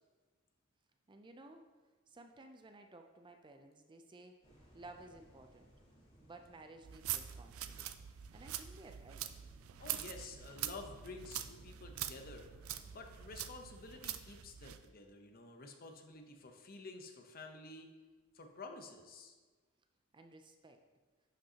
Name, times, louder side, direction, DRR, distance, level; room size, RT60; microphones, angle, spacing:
voice 1, 1.1-1.7 2.1-4.4 4.7-5.7 6.2-8.0 8.3-9.3 20.1-20.8, right 2 dB, 20° right, 6 dB, 0.4 m, -56 dB
sound 1, 4.4-12.9, equal, 30° left, 2.3 m, -66 dB
sound 2, 6.8-14.9, right 11 dB, 80° right, 0.4 m, -44 dB
voice 2, 9.8-12.5 12.9-17.9 18.3-19.4, left 3 dB, 45° left, 4 dB, 0.8 m, -51 dB
11.0 x 5.3 x 2.8 m, 1.3 s
head